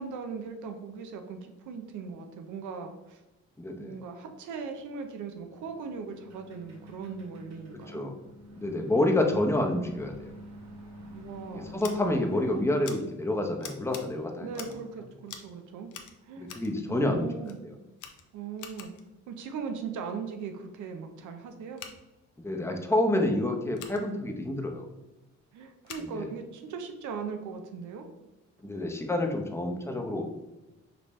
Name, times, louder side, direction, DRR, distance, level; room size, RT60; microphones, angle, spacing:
voice 1, 0.0-3.2 3.8-8.0 9.1-9.5 11.1-11.7 14.4-15.9 16.2-16.5 16.9-17.6 18.3-18.9 19.3-21.8 25.5-28.1, right 5 dB, 80° right, 6 dB, 0.6 m, -39 dB
voice 2, 3.6-3.9 7.9-8.1 8.6-10.1 11.5-14.5 16.4-17.3 17.6-17.7 22.4-24.9 26.0-26.3 28.6-30.2, left 1 dB, 10° left, 2 dB, 0.7 m, -28 dB
sound 1, 5.3-12.6, equal, 60° right, 1.2 m, -47 dB
Scissors, 11.8-11.9 12.8-13.0 13.6-14.0 14.5-14.9 15.3-15.5 15.9-16.7 17.4-17.6 18.0-19.1 21.7-21.9 23.7-24.0 25.8-26.1, left 8 dB, 80° left, 0.6 m, -45 dB
5.3 x 2.8 x 3.1 m, 1.0 s
cardioid pair, 90°, 30 cm